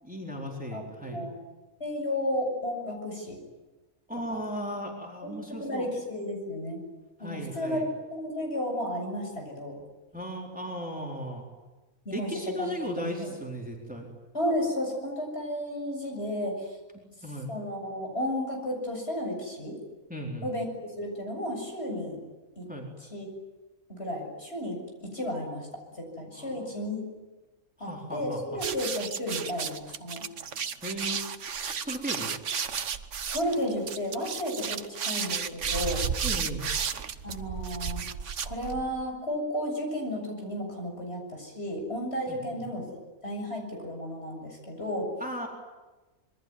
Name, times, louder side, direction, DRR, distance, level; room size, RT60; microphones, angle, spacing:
voice 1, 0.0-1.2 4.1-5.9 7.2-7.9 10.1-11.5 12.1-14.1 17.2-17.5 20.1-20.5 22.7-22.9 26.3-26.7 27.8-28.6 30.8-32.3 36.2-36.6 42.3-42.6 45.2-45.5, equal, 5° right, 0 dB, 4.3 m, -36 dB
voice 2, 1.8-3.4 4.3-4.4 5.2-6.8 7.2-9.8 12.0-12.3 12.6-13.3 14.3-16.8 17.5-19.8 20.4-22.2 22.6-22.7 23.1-23.3 23.9-25.7 25.9-27.0 27.8-30.2 33.3-36.0 37.2-38.0 38.4-42.8 43.2-45.1, left 1 dB, 45° left, 2 dB, 7.8 m, -33 dB
sound 1, 28.6-39.0, right 7 dB, 60° right, 1.4 m, -33 dB
26.5 x 23.0 x 9.6 m, 1.2 s
omnidirectional pair, 1.5 m